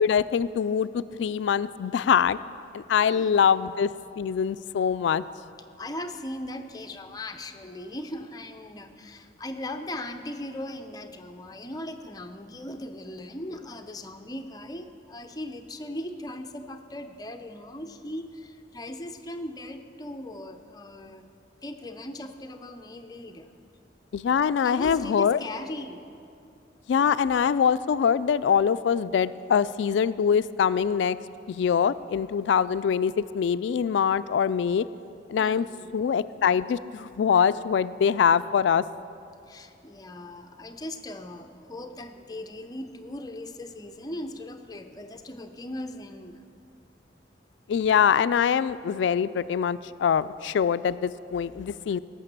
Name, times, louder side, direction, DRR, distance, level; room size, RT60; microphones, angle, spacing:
voice 1, 0.0-2.4 2.7-3.9 4.2-5.2 24.1-25.4 26.9-31.2 31.5-34.8 35.3-35.7 35.9-38.8 47.7-52.0, left 7 dB, 75° left, 16 dB, 0.3 m, -23 dB
voice 2, 5.8-21.2 21.6-23.5 24.6-26.0 35.4-36.0 39.5-46.5, left 1 dB, 20° left, 7 dB, 0.6 m, -38 dB
17.0 x 6.8 x 6.7 m, 2.6 s
head